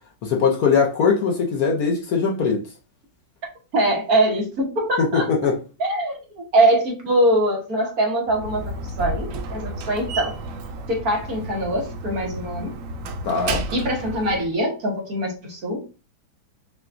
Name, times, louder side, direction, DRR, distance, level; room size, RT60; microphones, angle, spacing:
voice 1, 0.2-2.6 5.0-5.6 13.2-13.6, left 5 dB, 65° left, 1.1 m, -20 dB
voice 2, 3.7-5.2 5.8-10.3 10.9-12.7 13.7-15.9, right 1 dB, 55° right, 1.5 m, -23 dB
Slam, 8.3-14.5, right 2 dB, 85° right, 0.7 m, -32 dB
5.6 x 2.3 x 2.5 m
omnidirectional pair, 2.0 m